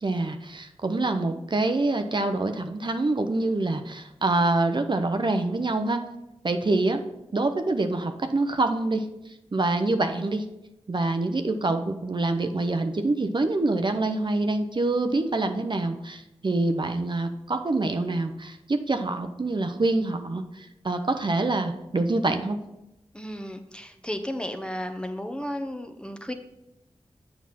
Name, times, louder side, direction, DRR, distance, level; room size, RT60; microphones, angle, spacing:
voice 1, 0.0-6.0 6.4-7.0 7.3-10.5 10.9-22.6, right 2 dB, 45° right, 7 dB, 0.6 m, -26 dB
voice 2, 23.1-26.3, equal, 10° left, 7 dB, 0.9 m, -33 dB
7.3 x 5.9 x 4.1 m, 0.90 s
cardioid pair, 40°, 11 cm